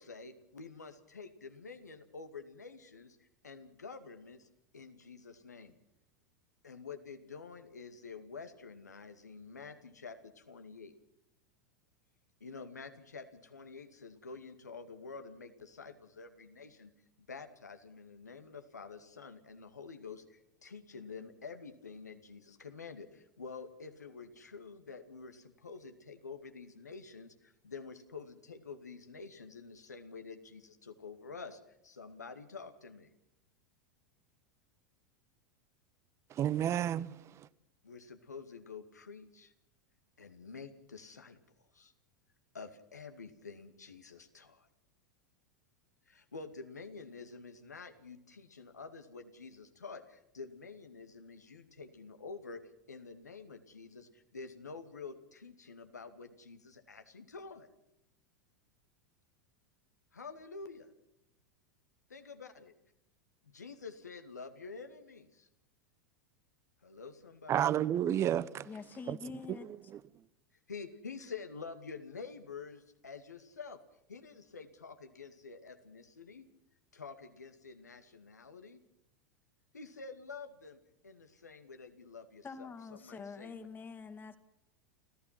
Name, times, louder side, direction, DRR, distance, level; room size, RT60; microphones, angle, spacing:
voice 1, 0.0-4.5 4.7-5.8 6.6-10.9 12.4-16.9 17.3-33.1 37.8-39.5 40.2-41.9 42.5-44.7 46.1-52.6 52.9-57.7 60.1-60.9 62.1-62.7 63.4-65.5 66.8-67.7 70.7-73.8 74.1-76.5 76.9-78.8 79.7-83.7, left 4 dB, 85° left, 2.3 m, -48 dB
voice 2, 36.3-37.5 67.5-68.7 69.1-69.2 69.5-69.6 69.9-70.0, right 11 dB, 30° right, 0.9 m, -31 dB
voice 3, 68.7-69.7 82.4-84.4, left 5 dB, 20° left, 2.3 m, -45 dB
29.0 x 15.5 x 5.9 m
figure-of-eight pair, 90°, 9 cm